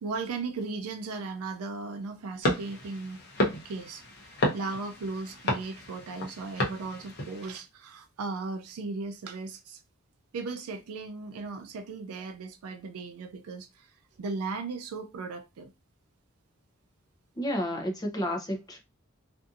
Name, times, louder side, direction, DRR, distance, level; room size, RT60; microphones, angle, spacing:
voice 1, 0.0-3.2 3.6-4.0 4.3-9.8 10.3-15.7, right 4 dB, 80° right, 0.4 m, -37 dB
sound 1, 2.4-7.6, left 1 dB, 50° left, 0.7 m, -32 dB
voice 2, 17.4-18.8, equal, 20° left, 0.6 m, -31 dB
2.6 x 2.5 x 2.4 m
head